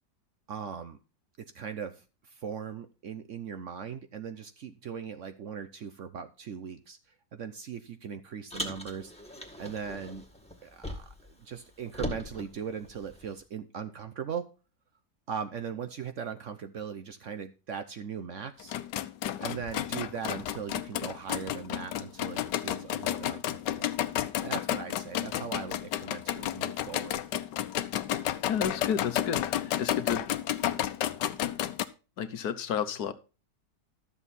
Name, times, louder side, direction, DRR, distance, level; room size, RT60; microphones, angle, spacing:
voice 1, 0.5-1.0 1.4-7.0 7.3-9.1 9.6-10.2 10.6-14.4 15.3-18.8 19.4-23.9 24.4-27.2, right 7 dB, 55° right, 9 dB, 0.9 m, -39 dB
Car, 8.5-11.3 11.6-13.4, left 1 dB, 5° left, 1.8 m, -40 dB
sound 1, 18.6-31.8, left 12 dB, 85° left, 1.3 m, -32 dB
voice 2, 28.5-30.2 32.2-33.1, left 8 dB, 70° left, 11 dB, 1.3 m, -31 dB
12.5 x 7.1 x 4.2 m, 0.33 s
omnidirectional pair, 1.8 m